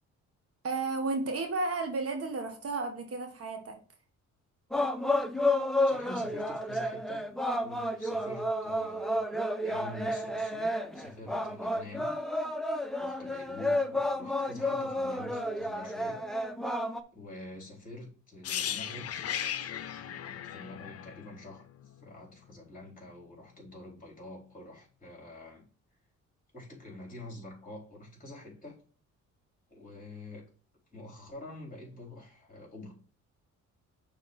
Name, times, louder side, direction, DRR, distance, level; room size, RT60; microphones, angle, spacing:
voice 1, 0.6-3.8, right 3 dB, 50° right, 4 dB, 1.6 m, -33 dB
sound 1, 4.7-17.0, left 1 dB, ahead, 0.8 m, -31 dB
voice 2, 5.9-7.2 7.6-9.2 9.6-12.1 13.0-16.2 17.1-19.1 20.0-21.7 22.0-25.7 26.5-28.8 29.7-30.5 30.9-32.9, left 1 dB, 25° left, -1 dB, 4.1 m, -46 dB
sound 2, 18.4-22.3 22.6-22.8, left 9 dB, 55° left, 0.7 m, -37 dB
6.5 x 3.8 x 5.4 m, 0.40 s
cardioid pair, 90°, 30 cm